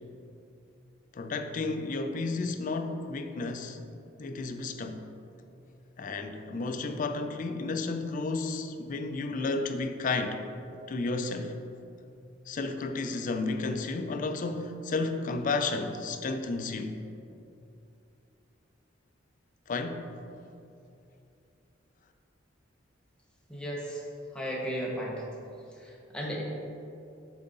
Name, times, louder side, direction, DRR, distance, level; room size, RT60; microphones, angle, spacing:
voice 1, 1.1-3.8 4.2-5.0 6.0-10.4 10.9-11.6 12.5-17.0 19.7-20.2, left 3 dB, 40° left, 7 dB, 0.4 m, -32 dB
voice 2, 23.5-24.1 24.3-25.3 25.7-26.4, equal, 5° left, -4 dB, 0.8 m, -35 dB
7.4 x 3.9 x 3.8 m, 2.7 s
head